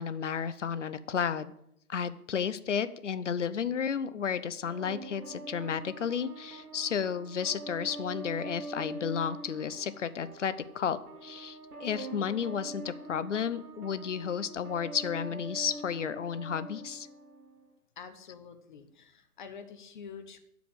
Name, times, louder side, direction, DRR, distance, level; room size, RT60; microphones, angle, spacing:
voice 1, 0.0-1.5 1.9-17.1, left 7 dB, 55° left, 14 dB, 0.8 m, -32 dB
sound 1, 4.6-17.7, right 1 dB, 70° right, 2.0 m, -44 dB
voice 2, 18.0-20.4, left 6 dB, 35° left, 8 dB, 1.0 m, -47 dB
12.0 x 5.1 x 7.8 m, 0.75 s
figure-of-eight pair, 145°, 45 cm